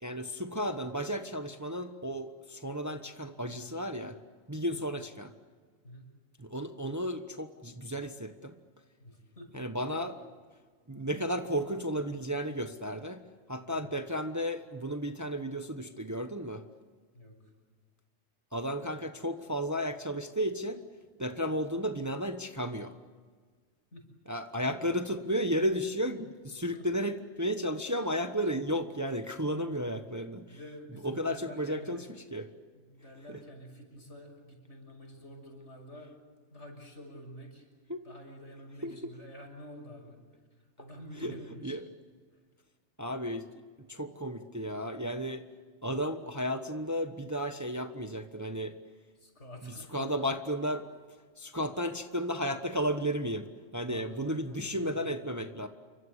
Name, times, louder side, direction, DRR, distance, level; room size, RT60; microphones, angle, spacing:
voice 1, 0.0-4.2 4.5-5.3 6.4-8.5 9.5-10.2 10.9-13.2 13.5-16.6 18.5-20.9 21.2-23.0 24.3-30.6 31.0-32.0 32.3-32.5 33.3-33.4 37.9-38.1 38.8-39.1 40.8-40.9 41.2-41.4 41.6-41.9 43.0-45.5 45.8-48.8 49.6-55.7, equal, 15° right, 7 dB, 1.1 m, -33 dB
voice 2, 9.0-9.7 10.0-10.1 13.7-13.9 17.1-17.4 23.9-24.0 26.7-26.9 30.3-32.0 32.7-36.1 36.5-37.7 38.0-40.2 40.6-41.8 49.2-50.1 53.9-55.2, equal, 70° left, 3 dB, 6.8 m, -49 dB
29.0 x 24.5 x 8.2 m, 1.5 s
omnidirectional pair, 1.3 m